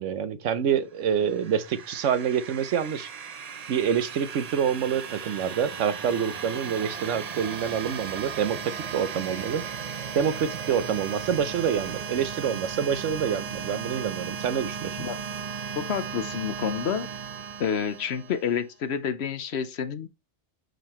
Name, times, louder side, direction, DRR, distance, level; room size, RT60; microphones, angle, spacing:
voice 1, 0.0-3.1 3.7-9.6 10.1-15.0, right 8 dB, 85° right, 1.1 m, -27 dB
sound 1, 1.0-18.6, right 6 dB, 45° right, 0.5 m, -36 dB
voice 2, 15.7-17.1 17.6-20.1, left 7 dB, 65° left, 1.0 m, -29 dB
6.7 x 6.5 x 3.0 m
omnidirectional pair, 1.2 m